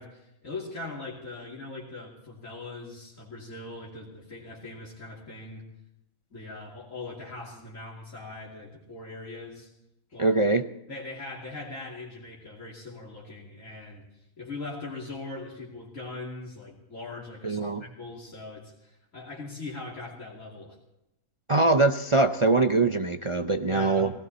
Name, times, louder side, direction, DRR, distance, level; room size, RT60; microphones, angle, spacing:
voice 1, 0.0-5.6 6.3-9.7 10.1-10.4 10.9-14.0 14.4-20.8 23.6-24.1, left 2 dB, 60° left, -4 dB, 3.1 m, -40 dB
voice 2, 10.2-10.6 17.4-17.8 21.5-24.1, right 3 dB, 55° right, 7 dB, 0.3 m, -23 dB
19.0 x 17.0 x 4.1 m, 0.87 s
omnidirectional pair, 1.5 m